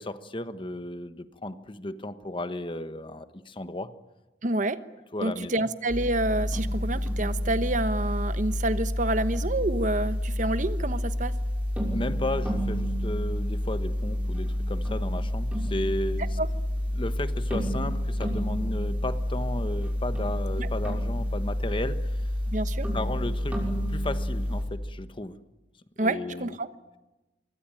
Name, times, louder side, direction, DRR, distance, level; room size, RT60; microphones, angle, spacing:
voice 1, 0.0-3.9 5.1-5.7 11.9-16.4 16.9-22.3 22.9-25.4 26.0-26.6, left 1 dB, 30° left, 11 dB, 1.3 m, -34 dB
voice 2, 4.4-4.8 5.2-11.3 16.4-16.5 20.6-20.7 22.5-22.9 26.0-26.7, right 2 dB, 45° right, 12 dB, 1.1 m, -28 dB
sound 1, 5.9-24.7, left 1 dB, 10° right, 6.4 m, -29 dB
24.5 x 23.5 x 9.1 m, 1.1 s
head